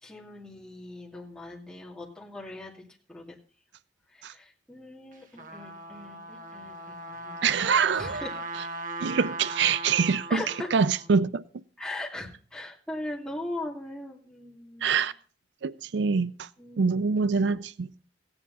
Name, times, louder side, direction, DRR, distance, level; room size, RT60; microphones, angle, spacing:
voice 1, 0.0-2.8 3.1-3.4 4.1-7.4 7.9-8.3 10.3-10.7 11.8-15.0 16.6-17.0, left 1 dB, 5° left, 2.5 m, -39 dB
Trumpet, 5.1-11.1, right 2 dB, 50° right, 1.7 m, -38 dB
voice 2, 7.4-8.2 9.0-10.4 10.7-11.4 14.8-15.1 15.6-16.5 16.8-17.9, right 5 dB, 80° right, 0.5 m, -25 dB
16.0 x 9.7 x 4.1 m
head